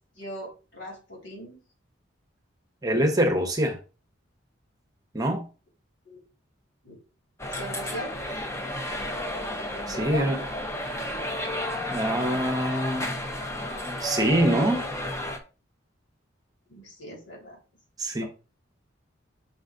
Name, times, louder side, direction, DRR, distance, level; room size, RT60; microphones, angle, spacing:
voice 1, 0.2-1.6 6.1-6.2 6.8-6.9 7.5-8.1 9.9-10.3 16.7-17.6 18.2-18.3, equal, 75° left, 3.8 m, -38 dB
voice 2, 2.8-3.8 5.1-5.4 9.9-10.4 11.9-13.2 14.0-14.9 18.0-18.2, right 1 dB, 20° right, 1.0 m, -24 dB
sound 1, 7.4-15.4, left 1 dB, 15° left, 0.9 m, -32 dB
6.1 x 4.0 x 5.1 m
head